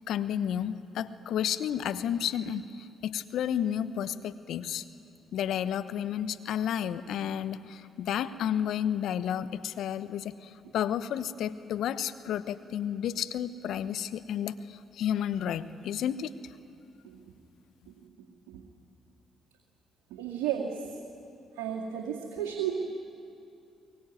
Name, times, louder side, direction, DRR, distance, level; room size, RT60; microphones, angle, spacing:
voice 1, 0.1-4.8 5.3-16.5, left 9 dB, 65° left, 12 dB, 1.0 m, -31 dB
voice 2, 20.1-20.9 21.6-22.8, right 9 dB, 75° right, -1 dB, 2.2 m, -33 dB
23.0 x 22.0 x 9.4 m, 2.6 s
hypercardioid pair, 45°, 0 cm